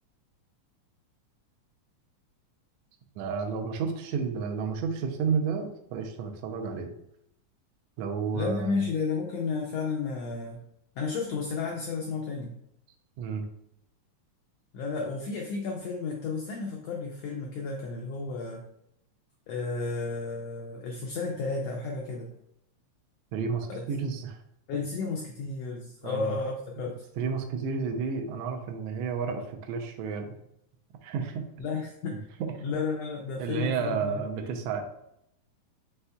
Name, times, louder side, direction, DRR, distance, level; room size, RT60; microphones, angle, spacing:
voice 1, 3.2-6.9 8.0-8.9 13.2-13.5 23.3-24.4 24.7-24.8 26.0-26.4 27.2-30.3 31.0-31.4 32.4-32.5 33.4-34.8, right 5 dB, 80° right, 4 dB, 1.5 m, -31 dB
voice 2, 8.3-10.6 11.0-12.5 14.7-18.6 19.5-22.3 23.7-23.8 24.7-27.0 31.6-32.3 32.6-34.6, left 4 dB, 85° left, 0 dB, 1.4 m, -32 dB
5.5 x 3.5 x 2.2 m, 0.78 s
omnidirectional pair, 3.5 m